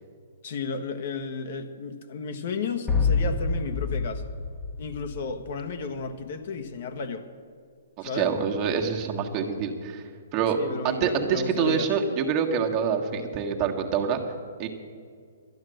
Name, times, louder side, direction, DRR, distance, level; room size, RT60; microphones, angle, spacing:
voice 1, 0.4-4.2 4.8-7.3 8.0-8.3 10.6-11.9, left 4 dB, 55° left, 7 dB, 1.2 m, -33 dB
sound 1, 2.9-5.7, left 4 dB, 10° left, 1.0 m, -27 dB
voice 2, 8.0-10.0 10.3-10.6 10.8-14.2 14.6-14.7, right 6 dB, 35° right, 2 dB, 1.5 m, -26 dB
12.0 x 9.8 x 7.7 m, 2.1 s
hypercardioid pair, 140°, 0 cm